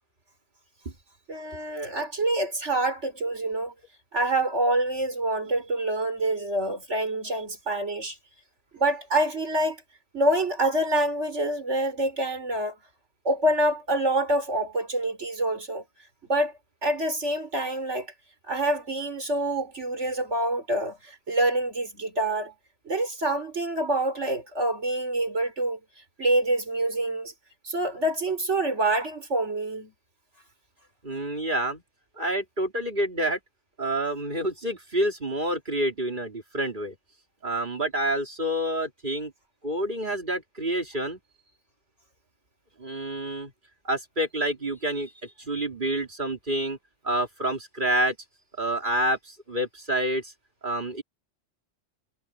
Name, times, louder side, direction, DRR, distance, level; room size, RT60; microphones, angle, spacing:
voice 1, 1.3-3.7 4.1-8.2 8.7-9.8 10.1-12.7 13.2-15.8 16.3-16.5 16.8-18.1 18.5-22.5 22.8-25.8 26.2-27.3 27.6-29.9, right 1 dB, 80° right, 5.0 m, -26 dB
voice 2, 31.0-31.8 32.2-33.4 33.8-36.9 37.4-39.3 39.6-41.2 42.8-43.5 43.8-46.8 47.0-48.1 48.6-50.3 50.6-51.0, right 1 dB, 45° right, 3.2 m, -28 dB
omnidirectional pair, 1.2 m